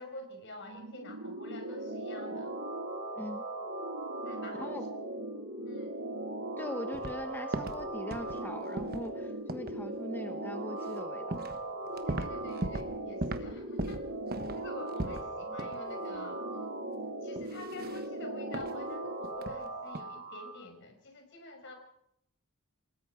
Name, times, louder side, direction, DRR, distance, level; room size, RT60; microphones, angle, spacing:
voice 1, 0.0-2.5 4.2-4.8 5.6-6.0 11.9-14.1 14.6-16.4 17.2-21.7, left 2 dB, 55° left, 5 dB, 5.5 m, -47 dB
sound 1, 0.6-20.6, right 2 dB, 65° right, 5.3 m, -38 dB
voice 2, 6.6-11.4, left 1 dB, 10° left, 6 dB, 1.1 m, -41 dB
sound 2, 6.9-7.2 7.5-8.4 8.8-9.1 9.5-9.8 10.9-11.0 11.3-11.6 11.9-12.9 13.2-13.5 13.8-15.3 15.6-15.8 16.2-16.3 17.4-18.1 18.5-18.8 19.2-19.6 19.9-20.0, right 2 dB, 45° right, 1.3 m, -38 dB
29.5 x 19.0 x 4.9 m, 0.75 s
head